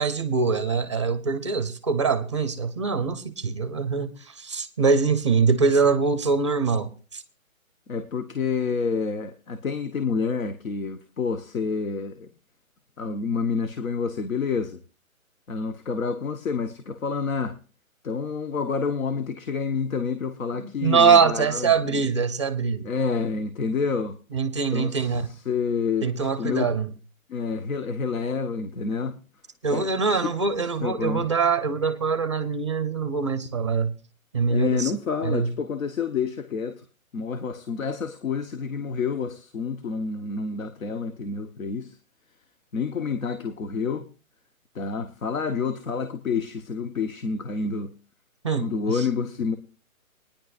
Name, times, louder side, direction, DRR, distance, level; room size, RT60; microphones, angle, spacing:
voice 1, 0.0-7.2 20.5-22.9 24.3-25.3 26.0-26.9 29.6-33.9 34.3-34.9 35.2-35.5 48.4-49.0, right 5 dB, 20° right, 0.6 m, -23 dB
voice 2, 7.9-12.3 13.0-14.8 15.5-17.6 18.0-22.0 22.8-24.2 24.7-26.7 27.3-29.2 29.7-29.8 30.1-30.3 30.8-31.3 34.5-36.8 37.1-42.0 42.7-44.1 44.7-47.9 48.6-49.6, left 5 dB, 70° left, 1.3 m, -28 dB
19.5 x 10.0 x 2.5 m
hypercardioid pair, 165°, 42 cm